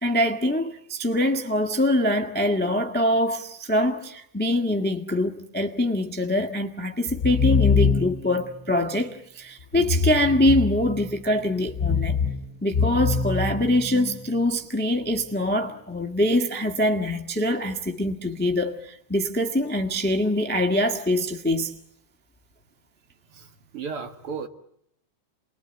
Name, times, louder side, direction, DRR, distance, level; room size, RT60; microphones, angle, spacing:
voice 1, 0.0-12.2 12.6-21.7, left 1 dB, 10° left, 0.5 m, -24 dB
sound 1, 7.1-8.4 9.7-11.1 11.7-14.2, left 5 dB, 75° left, 0.8 m, -24 dB
voice 2, 23.3-24.5, right 5 dB, 50° right, 2.3 m, -35 dB
29.0 x 22.0 x 9.1 m
omnidirectional pair, 3.5 m